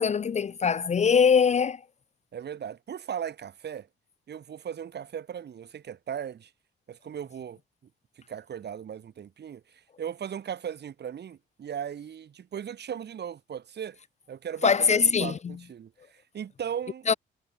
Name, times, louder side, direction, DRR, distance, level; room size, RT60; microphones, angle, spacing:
voice 1, 0.0-1.8 14.6-15.5 17.1-17.2, left 6 dB, 35° left, 0.6 m, -22 dB
voice 2, 2.3-3.9 4.3-6.5 6.9-7.6 8.3-14.0 14.3-17.2, right 8 dB, 55° right, 7.2 m, -37 dB
cardioid pair, 90°, 20 cm